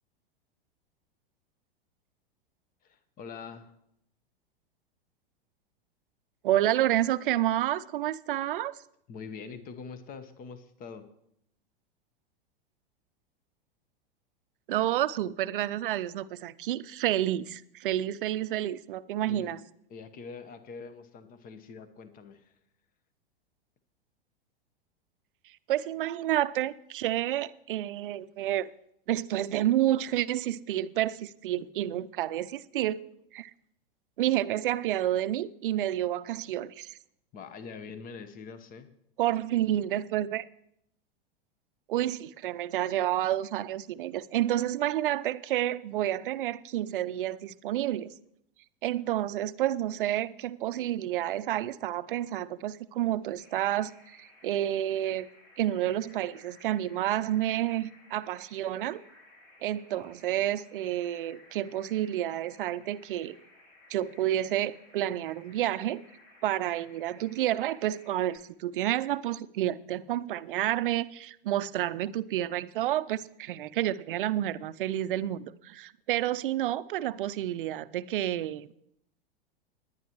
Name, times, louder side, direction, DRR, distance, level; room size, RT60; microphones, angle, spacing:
voice 1, 2.8-3.7 9.1-11.1 19.3-19.6 19.9-22.5 37.3-38.9, left 5 dB, 30° left, 1.1 m, -44 dB
voice 2, 6.4-8.8 14.7-19.6 25.7-28.7 29.1-33.0 33.3-33.5 34.2-37.0 39.2-40.5 41.9-48.1 48.8-55.3 55.6-59.0 59.6-63.4 63.9-66.0 66.4-78.7, right 13 dB, 60° right, 0.6 m, -29 dB
sound 1, 53.4-68.4, left 2 dB, 50° left, 4.5 m, -58 dB
20.0 x 9.8 x 3.1 m
figure-of-eight pair, 95°, 30 cm